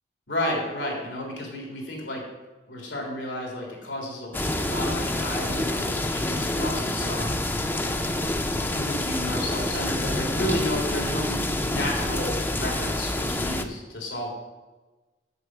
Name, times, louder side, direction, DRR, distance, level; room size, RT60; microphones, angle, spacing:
voice 1, 0.3-2.2 2.7-7.4 8.7-11.4 11.7-14.3, left 1 dB, 90° left, -1 dB, 3.6 m, -32 dB
sound 1, 4.3-13.6, left 1 dB, 10° left, 0.5 m, -27 dB
8.1 x 7.6 x 7.8 m, 1.2 s
head